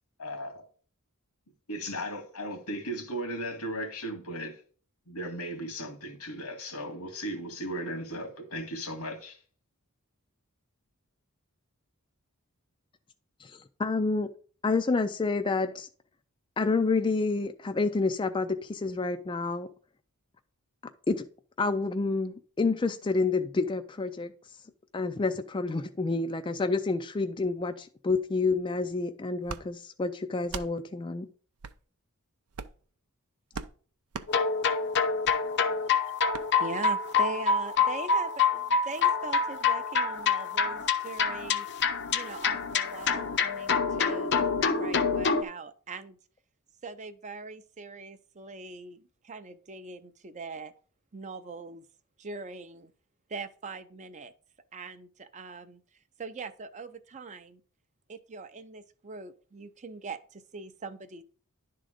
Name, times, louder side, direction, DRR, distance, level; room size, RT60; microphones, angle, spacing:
voice 1, 0.2-0.6 1.7-4.6 5.1-9.4, equal, 90° left, 2.0 m, -36 dB
voice 2, 13.4-14.3 14.6-15.9 16.6-19.7 21.1-21.2 21.6-24.3 24.9-31.3, left 3 dB, 20° left, 0.4 m, -29 dB
sound 1, 29.4-29.6 30.4-30.7 31.6-31.8 32.5-32.8 33.5-33.7 34.1-34.3 35.2-35.4 36.3-36.5, right 5 dB, 80° right, 0.5 m, -38 dB
sound 2, 34.3-45.4, left 5 dB, 50° left, 0.7 m, -27 dB
voice 3, 36.6-41.7 42.1-46.2 46.8-50.7 51.1-51.8 52.2-52.9 53.3-54.3 54.7-55.8 56.2-57.6 58.1-61.2, right 3 dB, 35° right, 0.6 m, -41 dB
11.0 x 3.8 x 5.0 m
head